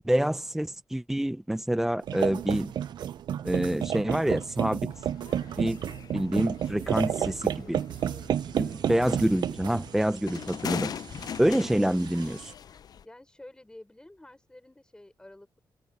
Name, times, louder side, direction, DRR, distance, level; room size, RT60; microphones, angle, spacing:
voice 1, 0.0-2.7 3.4-5.1 5.6-5.8 6.1-7.3 7.7-7.8 8.6-10.9 11.4-12.5, right 1 dB, 5° right, 0.6 m, -27 dB
sound 1, 2.0-10.0, right 10 dB, 85° right, 1.3 m, -44 dB
sound 2, 2.1-12.5, right 9 dB, 70° right, 0.7 m, -32 dB
sound 3, 4.9-13.0, left 8 dB, 60° left, 0.6 m, -41 dB
voice 2, 6.9-8.0 8.4-9.0 11.8-12.0 13.0-15.6, left 1 dB, 10° left, 6.3 m, -50 dB
cardioid pair, 105°, 8 cm